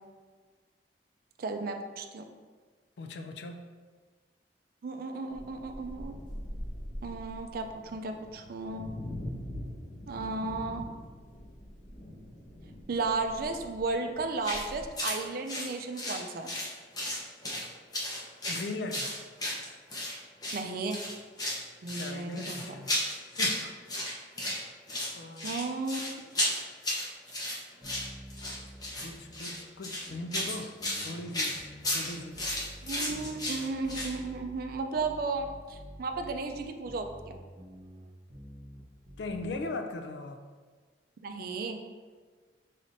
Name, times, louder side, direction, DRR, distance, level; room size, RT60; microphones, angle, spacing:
voice 1, 1.4-2.2 4.8-6.1 7.0-8.9 10.1-10.8 12.9-16.5 20.5-21.0 21.8-22.7 25.4-26.0 32.8-37.4 41.2-41.8, right 3 dB, 55° right, 6 dB, 0.4 m, -34 dB
voice 2, 3.0-3.7 18.5-19.2 21.9-23.0 23.4-23.7 25.1-25.5 29.0-30.7 31.0-31.6 31.9-32.4 39.2-40.4, left 2 dB, 70° left, 6 dB, 0.4 m, -39 dB
sound 1, 5.3-14.9, left 1 dB, 45° left, 1.2 m, -43 dB
sound 2, 14.4-14.7 15.0-15.2 15.5-16.7 16.9-17.7 17.9-20.1 20.4-20.6 20.9-21.6 21.9-23.6 23.9-24.6 24.9-34.1, left 1 dB, 25° left, 0.8 m, -33 dB
sound 3, 27.8-39.6, equal, 30° right, 1.0 m, -49 dB
4.9 x 4.1 x 2.6 m, 1.5 s
head